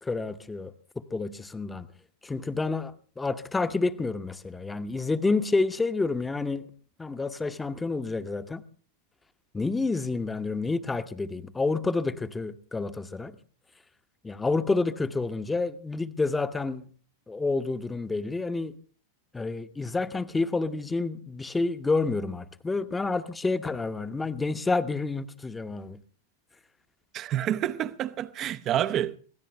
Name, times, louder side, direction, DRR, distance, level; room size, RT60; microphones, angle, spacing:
voice 1, 0.0-1.9 2.2-6.7 7.0-8.6 9.5-13.3 14.2-16.8 17.3-18.7 19.3-26.0, left 3 dB, 10° left, 1.0 m, -29 dB
voice 2, 27.1-29.2, right 11 dB, 30° right, 0.8 m, -28 dB
24.0 x 17.0 x 3.4 m
figure-of-eight pair, 90°, 0 cm